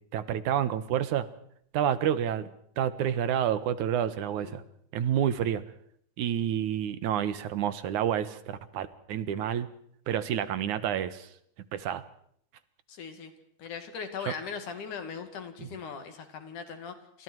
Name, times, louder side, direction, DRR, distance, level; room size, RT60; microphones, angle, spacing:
voice 1, 0.1-1.3 1.7-2.5 2.8-4.6 4.9-5.6 6.2-9.7 10.1-11.3 11.7-12.0, right 9 dB, 80° right, 13 dB, 2.7 m, -29 dB
voice 2, 12.9-13.3 13.6-17.2, left 6 dB, 80° left, 7 dB, 4.0 m, -39 dB
29.5 x 27.0 x 4.7 m, 0.67 s
omnidirectional pair, 3.5 m